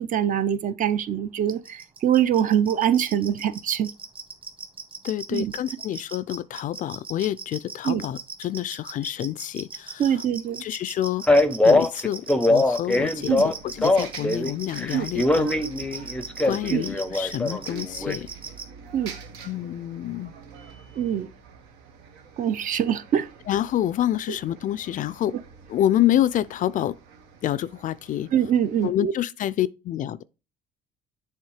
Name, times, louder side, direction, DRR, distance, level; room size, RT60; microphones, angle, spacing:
voice 1, 0.0-3.9 5.3-5.5 7.8-8.0 10.0-10.6 13.3-13.4 14.9-15.1 16.7-16.8 18.9-19.1 21.0-21.3 22.4-23.3 28.3-29.1, right 9 dB, 50° right, 0.6 m, -23 dB
sound 1, 1.5-18.6, right 4 dB, 30° right, 1.6 m, -37 dB
voice 2, 5.0-10.2 10.6-11.3 11.6-15.5 16.4-18.3 19.4-20.3 23.5-25.4 25.7-27.0 27.4-28.3 28.8-30.2, left 12 dB, 50° left, 0.4 m, -27 dB
Male speech man speaking, 11.3-14.5 14.8-18.1, left 2 dB, 5° left, 0.6 m, -22 dB
Bus, 13.1-28.9, right 5 dB, 85° right, 1.2 m, -46 dB
7.4 x 3.6 x 4.8 m
cardioid pair, 110°, 17 cm